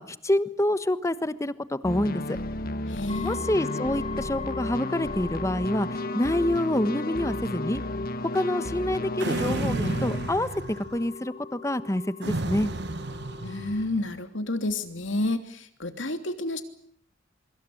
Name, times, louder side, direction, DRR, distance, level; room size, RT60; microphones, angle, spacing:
voice 1, 0.0-2.4 3.2-7.8 8.3-12.7, left 1 dB, 15° left, 13 dB, 1.3 m, -27 dB
sound 1, 1.8-10.3, left 1 dB, 50° left, 1.5 m, -33 dB
voice 2, 2.9-3.4 13.4-16.6, left 2 dB, 70° left, 8 dB, 3.1 m, -30 dB
sound 2, 3.1-13.9, left 5 dB, 35° left, 3.9 m, -39 dB
sound 3, 9.2-11.1 12.2-14.0, right 2 dB, 60° right, 1.2 m, -32 dB
25.0 x 24.5 x 7.9 m, 0.65 s
head